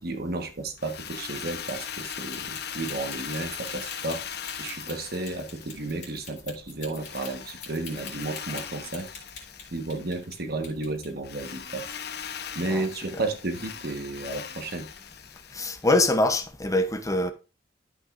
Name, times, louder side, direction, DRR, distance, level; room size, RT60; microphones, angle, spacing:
voice 1, 0.0-4.2 4.6-9.1 9.7-11.9 12.5-14.9, right 2 dB, 60° right, 1.3 m, -32 dB
Drill, 0.8-6.3 7.0-10.3 11.2-16.0, left 8 dB, 65° left, 0.9 m, -39 dB
sound 1, 1.6-10.4 10.6-12.0 12.3-12.5, left 6 dB, 45° left, 2.9 m, -44 dB
voice 2, 12.7-13.2 15.5-17.3, left 2 dB, 20° left, 0.7 m, -24 dB
12.5 x 5.4 x 2.5 m
head